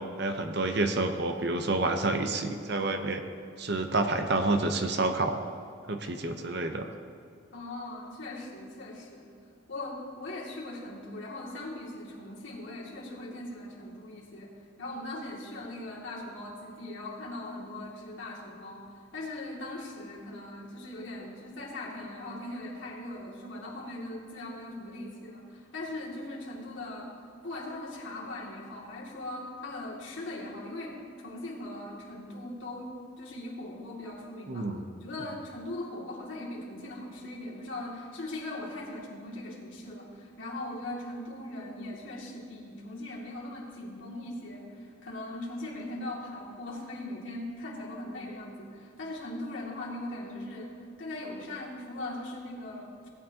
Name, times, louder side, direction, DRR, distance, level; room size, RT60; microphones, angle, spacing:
voice 1, 0.2-3.2 3.6-5.4 5.9-6.9 34.5-34.8, right 2 dB, 55° right, 6 dB, 0.8 m, -28 dB
voice 2, 7.5-9.3 9.7-18.8 19.1-27.2 27.4-34.7 35.0-53.0, left 1 dB, 70° left, -4 dB, 2.4 m, -40 dB
16.5 x 9.4 x 2.9 m, 2.5 s
head